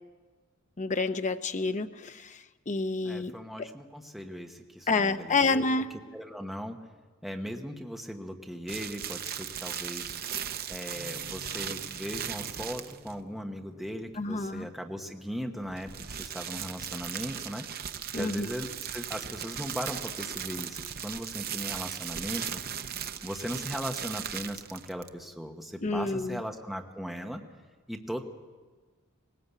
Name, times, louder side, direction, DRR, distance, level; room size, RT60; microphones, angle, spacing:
voice 1, 0.8-3.7 4.9-5.9 14.2-14.7 18.1-18.5 25.8-26.4, left 3 dB, 35° left, 8 dB, 0.7 m, -29 dB
voice 2, 3.0-5.7 6.1-6.8 7.2-10.2 10.7-17.8 18.1-22.6 23.2-27.5 27.9-28.2, equal, ahead, 3 dB, 1.1 m, -38 dB
sound 1, 8.7-13.2 15.6-25.2, right 9 dB, 45° right, 0.8 m, -37 dB
sound 2, 10.9-17.2, left 2 dB, 75° right, 2.7 m, -55 dB
20.0 x 18.5 x 8.1 m, 1.4 s
head